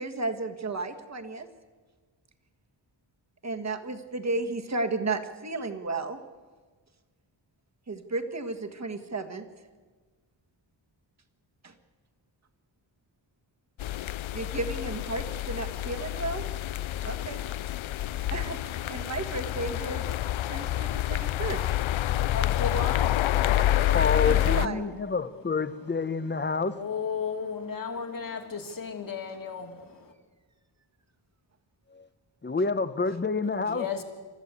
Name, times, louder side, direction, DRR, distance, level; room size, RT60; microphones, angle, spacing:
voice 1, 0.0-1.5 3.4-6.2 7.9-9.5 11.6-11.7 14.3-16.4 17.0-17.4 18.3-20.0 20.5-21.7 24.3-24.8, right 3 dB, 35° right, 1.6 m, -33 dB
sound 1, 13.8-24.7, left 14 dB, 80° left, 0.6 m, -28 dB
voice 2, 21.6-24.0 25.1-25.5 25.8-30.1 33.5-34.0, left 5 dB, 45° left, 2.4 m, -36 dB
voice 3, 23.6-26.8 31.9-32.0 32.4-33.8, left 4 dB, 25° left, 0.8 m, -28 dB
29.0 x 14.0 x 8.4 m
wide cardioid pair, 165°, 47 cm